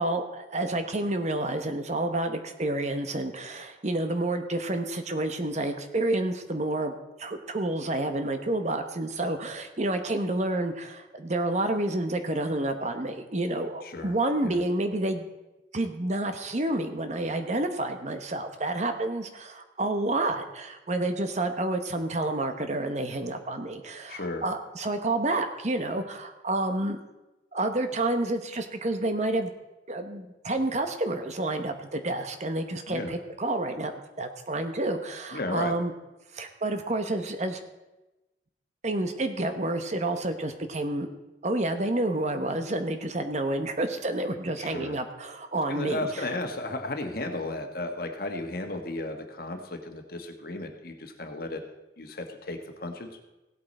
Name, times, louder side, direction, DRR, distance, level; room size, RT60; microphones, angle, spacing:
voice 1, 0.0-6.9 7.2-15.3 15.7-27.0 27.5-29.5 29.9-35.9 36.3-37.6 38.8-41.1 41.4-46.3, right 2 dB, 40° right, 7 dB, 1.0 m, -29 dB
voice 2, 13.8-14.2 14.4-14.6 24.1-24.4 32.9-33.1 35.3-35.7 44.6-45.0 45.7-51.6 52.0-53.1, left 2 dB, 55° left, 4 dB, 1.4 m, -34 dB
16.5 x 8.4 x 4.3 m, 1.0 s
head